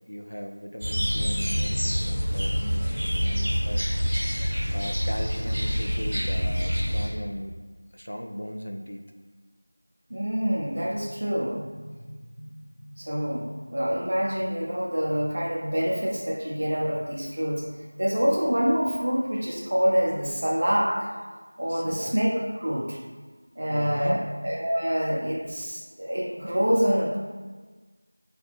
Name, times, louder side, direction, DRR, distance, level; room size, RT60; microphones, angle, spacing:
voice 1, 0.1-3.8 4.7-7.5 7.9-9.0 21.7-22.2 23.7-24.3, equal, 65° left, 4 dB, 0.4 m, -37 dB
sound 1, 0.8-7.1, equal, 5° right, 0.8 m, -26 dB
voice 2, 10.1-11.9 12.3-12.5 12.8-17.7 18.0-21.1 21.6-23.0 23.6-27.2, equal, 20° right, -3 dB, 0.4 m, -26 dB
4.9 x 2.2 x 3.5 m, 1.4 s
figure-of-eight pair, 180°, 0 cm